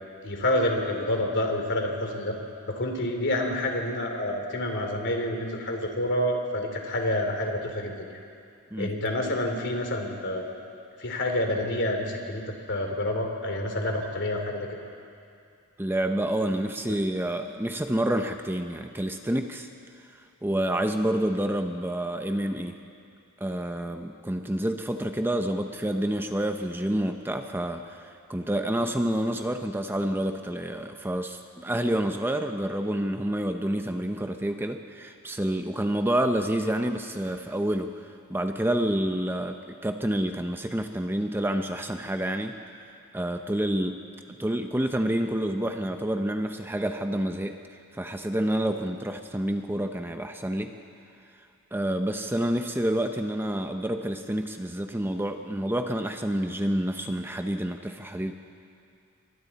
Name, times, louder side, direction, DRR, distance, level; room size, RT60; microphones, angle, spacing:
voice 1, 0.2-2.4 2.7-8.2 8.8-10.5 11.0-14.8, left 1 dB, 55° left, 3 dB, 2.9 m, -28 dB
voice 2, 15.8-19.7 20.2-22.8 23.4-42.6 43.1-44.0 44.4-47.6 47.9-50.7 51.7-58.3, right 1 dB, 10° right, 5 dB, 0.7 m, -28 dB
28.5 x 23.5 x 4.2 m, 2.5 s
head